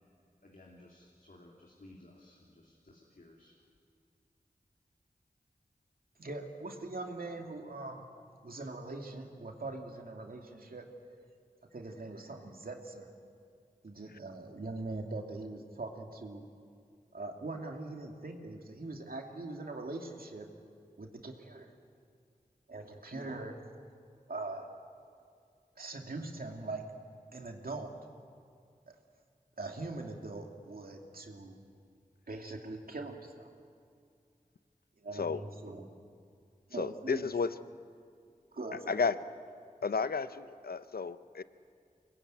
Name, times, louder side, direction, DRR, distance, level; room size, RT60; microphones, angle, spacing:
voice 1, 0.4-3.6, left 1 dB, 70° left, -2 dB, 3.1 m, -57 dB
voice 2, 6.2-8.1 8.4-10.9 11.7-13.1 13.8-16.5 17.1-20.5 21.0-21.7 22.7-23.6 24.3-24.8 25.8-26.9 27.3-28.0 28.9-29.0 29.6-31.6 32.3-33.5 35.0-35.9 36.7-37.3 38.5-39.2, right 2 dB, 75° right, 2 dB, 2.6 m, -42 dB
voice 3, 36.8-37.5 38.9-39.2 39.8-41.4, left 5 dB, 85° left, 13 dB, 0.7 m, -32 dB
24.5 x 20.5 x 9.3 m, 2.3 s
wide cardioid pair, 40°, 15 cm